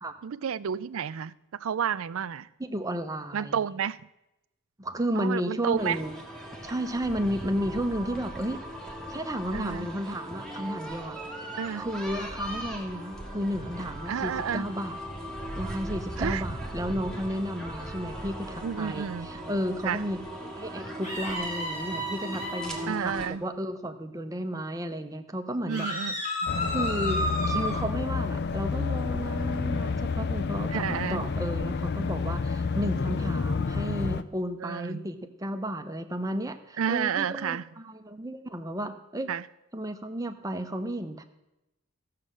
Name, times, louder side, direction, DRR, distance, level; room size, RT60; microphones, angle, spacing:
voice 1, 0.2-1.3 1.6-2.5 3.3-4.0 5.2-6.0 9.5-9.9 11.6-11.8 14.1-14.6 16.2-16.4 18.6-19.3 19.8-20.0 22.9-23.4 25.7-26.1 30.7-31.2 34.6-35.1 36.8-37.6 39.3-39.4, right 7 dB, 65° right, 17 dB, 0.4 m, -30 dB
voice 2, 2.6-3.7 4.8-6.2 6.6-8.6 9.1-11.2 11.7-15.0 15.6-20.2 20.6-25.9 26.7-39.3 39.7-41.2, equal, 15° right, 7 dB, 0.7 m, -33 dB
sound 1, 5.8-23.3, right 1 dB, 5° left, 1.5 m, -38 dB
sound 2, 21.0-22.8 25.7-27.8, equal, 30° left, 4.4 m, -32 dB
sound 3, 26.5-34.2, left 4 dB, 50° left, 0.5 m, -29 dB
14.0 x 6.7 x 7.4 m, 0.91 s
head